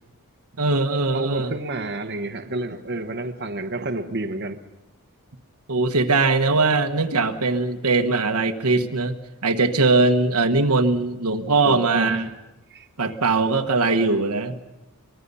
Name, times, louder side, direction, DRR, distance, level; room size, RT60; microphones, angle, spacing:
voice 1, 0.6-1.5 5.7-9.2 9.4-12.3 13.0-14.5, right 3 dB, 85° right, 6 dB, 1.3 m, -21 dB
voice 2, 1.1-4.6 11.6-12.2 12.7-12.9, right 2 dB, 50° right, 5 dB, 1.0 m, -29 dB
24.0 x 21.0 x 5.5 m, 1.1 s
head